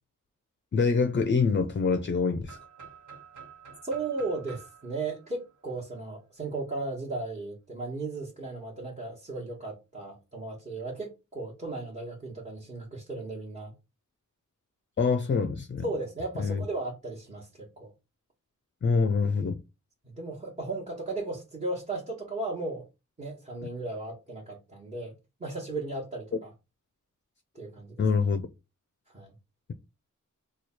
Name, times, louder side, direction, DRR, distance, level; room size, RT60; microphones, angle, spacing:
voice 1, 0.7-2.6 15.0-15.8 16.4-16.7 18.8-19.6 28.0-28.5, left 5 dB, 40° left, 0.4 m, -25 dB
sound 1, 2.5-6.3, right 6 dB, 65° right, 1.5 m, -50 dB
voice 2, 3.8-13.7 15.8-17.9 20.0-22.8 23.2-25.1 25.4-26.5 27.5-28.0 29.1-29.3, right 2 dB, 25° right, 1.2 m, -36 dB
3.1 x 2.3 x 4.2 m
wide cardioid pair, 85°, 32 cm